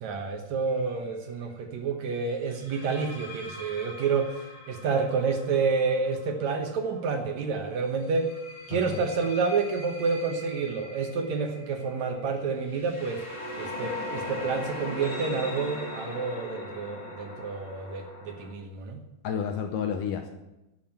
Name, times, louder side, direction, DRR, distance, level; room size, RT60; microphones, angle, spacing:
voice 1, 0.0-8.3 8.7-13.2 13.6-19.0, right 4 dB, 65° right, 5 dB, 2.0 m, -29 dB
sound 1, 0.7-1.0 2.5-7.2 8.0-18.5, left 2 dB, 25° left, 2.3 m, -40 dB
voice 2, 8.7-9.0 19.2-20.4, left 7 dB, 75° left, 5 dB, 2.3 m, -31 dB
11.5 x 7.8 x 8.8 m, 0.96 s
omnidirectional pair, 4.2 m